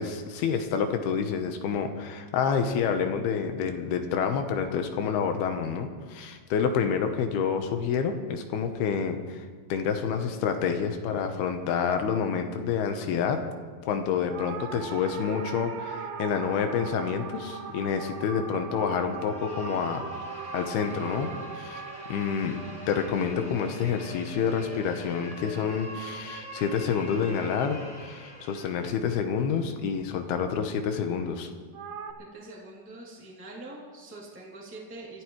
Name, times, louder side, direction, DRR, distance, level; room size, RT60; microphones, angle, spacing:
voice 1, 0.0-9.4 9.7-13.4 13.8-20.1 20.5-21.3 21.6-21.8 22.1-22.6 22.9-31.5, left 6 dB, 80° left, 6 dB, 2.9 m, -28 dB
sound 1, 14.3-24.8 31.7-32.1, right 5 dB, 70° right, 2.4 m, -40 dB
sound 2, 19.1-28.9, equal, 25° left, 2.2 m, -43 dB
voice 2, 32.3-35.2, right 2 dB, 5° right, -5 dB, 2.1 m, -44 dB
26.0 x 14.0 x 3.2 m, 1.5 s
omnidirectional pair, 4.6 m